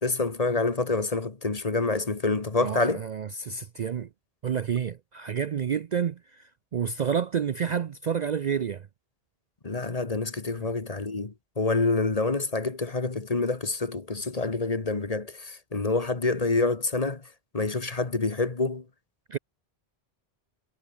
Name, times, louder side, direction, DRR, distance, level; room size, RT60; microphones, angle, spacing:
voice 1, 0.0-3.0 9.6-17.2 17.5-18.8, left 3 dB, 35° left, 1.5 m, -27 dB
voice 2, 2.6-4.1 4.4-8.9 10.6-10.7 19.3-19.4, right 7 dB, 50° right, 0.6 m, -29 dB
omnidirectional pair, 1.1 m